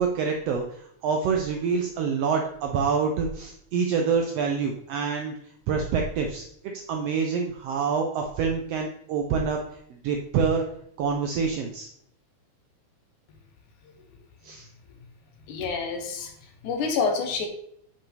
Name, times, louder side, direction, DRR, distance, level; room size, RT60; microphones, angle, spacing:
voice 1, 0.0-5.3 5.7-6.5 6.9-9.6 10.0-10.6 11.0-11.9 14.4-14.7, right 5 dB, 90° right, 2 dB, 1.3 m, -26 dB
voice 2, 15.5-17.5, left 5 dB, 75° left, 4 dB, 2.5 m, -28 dB
8.0 x 5.3 x 3.3 m, 0.69 s
omnidirectional pair, 3.6 m